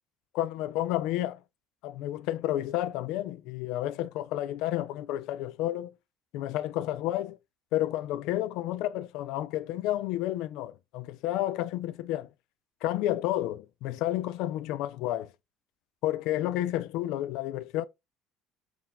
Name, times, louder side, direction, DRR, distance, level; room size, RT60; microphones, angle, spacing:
voice 1, 0.3-1.4 1.8-5.9 6.3-7.4 7.7-12.3 12.8-15.3 16.0-17.8, left 14 dB, 75° left, 0.3 m, -31 dB
4.5 x 2.2 x 3.5 m
cardioid pair, 110°, 0 cm